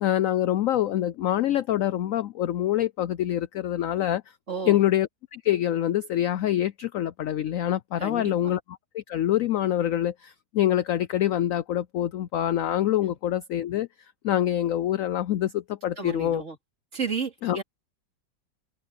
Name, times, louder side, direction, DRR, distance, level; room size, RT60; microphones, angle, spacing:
voice 1, 0.0-4.2 4.6-13.9 14.2-16.4 17.4-17.6, left 12 dB, 75° left, 0.7 m, -25 dB
voice 2, 4.5-4.8 8.0-8.6 13.1-13.2 16.0-16.6 16.9-17.6, right 5 dB, 40° right, 3.0 m, -32 dB
omnidirectional pair, 2.0 m